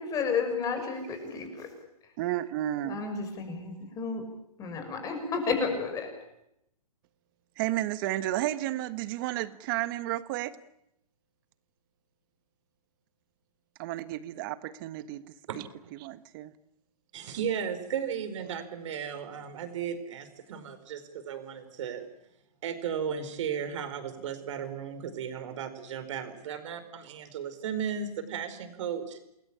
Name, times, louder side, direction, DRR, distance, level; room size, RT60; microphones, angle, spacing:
voice 1, 0.0-1.7 2.8-4.2 4.6-6.1, left 5 dB, 15° left, 6 dB, 5.9 m, -32 dB
voice 2, 2.2-3.0 7.6-10.5 13.8-15.7 16.0-16.5, right 15 dB, 35° right, 14 dB, 1.4 m, -32 dB
voice 3, 17.1-22.1 22.6-29.2, right 7 dB, 50° right, 10 dB, 4.7 m, -35 dB
28.5 x 21.0 x 8.8 m, 0.82 s
hypercardioid pair, 145°, 20 cm